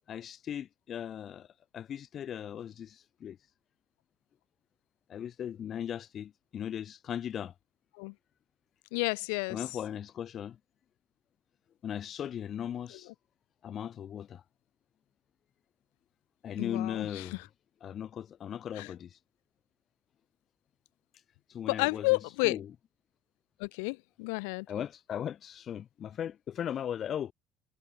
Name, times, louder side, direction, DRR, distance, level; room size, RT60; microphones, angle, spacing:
voice 1, 0.1-1.5 1.7-3.4 5.1-7.5 9.5-10.6 11.8-13.1 13.6-14.4 16.4-17.4 17.8-19.2 21.5-22.7 24.7-27.3, left 9 dB, 50° left, 2.4 m, -38 dB
voice 2, 8.9-9.6 16.6-17.3 18.8-18.9 21.7-22.6 23.6-24.7, left 32 dB, 80° left, 5.7 m, -31 dB
hypercardioid pair, 70°, 0 cm